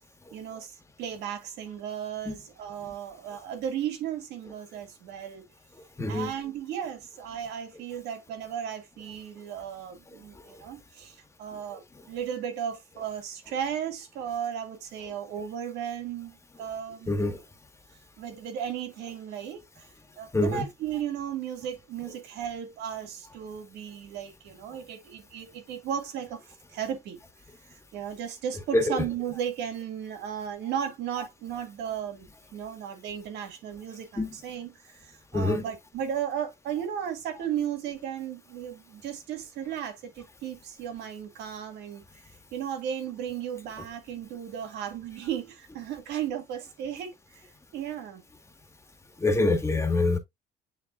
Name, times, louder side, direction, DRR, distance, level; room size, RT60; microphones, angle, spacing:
voice 1, 0.3-5.4 6.1-17.4 18.2-19.8 20.2-26.4 26.7-27.2 27.9-32.3 32.5-42.0 42.5-47.4 47.7-48.2, right 9 dB, 85° right, 2.2 m, -35 dB
voice 2, 6.0-6.3 17.1-17.4 20.3-20.6 28.7-29.1 34.2-34.3 35.3-35.6 49.2-50.2, left 2 dB, 15° left, 1.7 m, -25 dB
10.5 x 3.6 x 2.5 m
cardioid pair, 110°, 17 cm